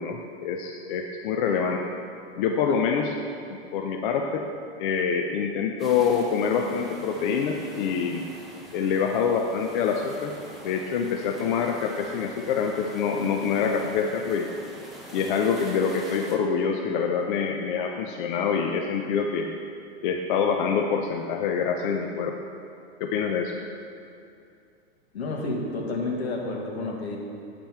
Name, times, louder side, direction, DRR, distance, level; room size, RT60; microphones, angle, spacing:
voice 1, 0.0-1.8 2.4-3.2 3.7-4.5 4.8-8.2 8.7-10.3 10.6-14.5 15.1-19.5 20.0-22.4 23.0-23.6, left 6 dB, 55° left, 2 dB, 0.6 m, -26 dB
sound 1, 5.8-16.4, equal, ahead, 1.0 m, -44 dB
voice 2, 25.1-27.2, left 2 dB, 80° left, -1 dB, 1.6 m, -30 dB
9.0 x 5.3 x 4.5 m, 2.5 s
hypercardioid pair, 120°, 31 cm